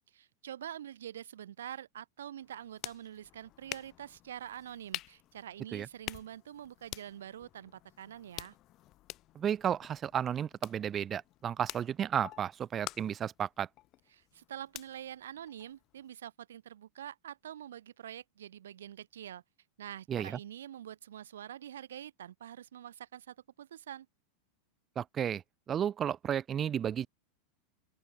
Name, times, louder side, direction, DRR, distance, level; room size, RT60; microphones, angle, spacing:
voice 1, 0.2-8.5 14.1-19.4 19.8-24.1, right 10 dB, 80° right, 1.9 m, -46 dB
sound 1, 2.4-16.1, left 16 dB, 45° left, 1.4 m, -48 dB
voice 2, 9.4-13.7 20.1-20.4 25.0-25.4 25.7-27.1, right 9 dB, 30° right, 0.5 m, -33 dB
open air
hypercardioid pair, 95°, 0 cm